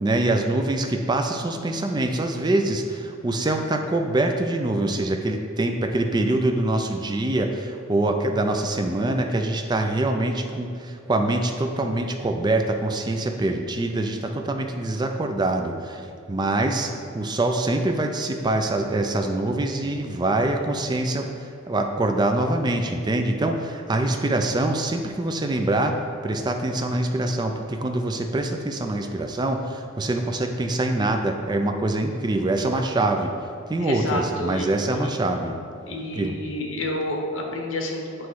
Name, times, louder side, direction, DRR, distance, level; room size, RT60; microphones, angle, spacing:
voice 1, 0.0-26.0 26.2-33.3 33.7-35.5 36.2-36.3, right 2 dB, 20° right, 4 dB, 0.4 m, -24 dB
voice 2, 33.8-35.1 35.8-38.3, left 1 dB, 75° left, 1 dB, 0.9 m, -29 dB
8.1 x 3.1 x 4.6 m, 2.4 s
head